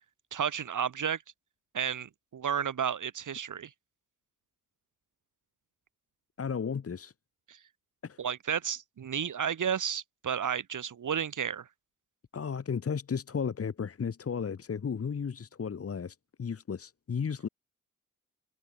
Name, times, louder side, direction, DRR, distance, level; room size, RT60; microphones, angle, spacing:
voice 1, 0.3-1.2 1.7-3.7 7.5-7.6 8.2-11.7, right 8 dB, 70° right, 3.8 m, -32 dB
voice 2, 6.4-7.1 8.0-8.2 12.3-17.5, left 6 dB, 45° left, 1.6 m, -34 dB
cardioid pair, 85°, 32 cm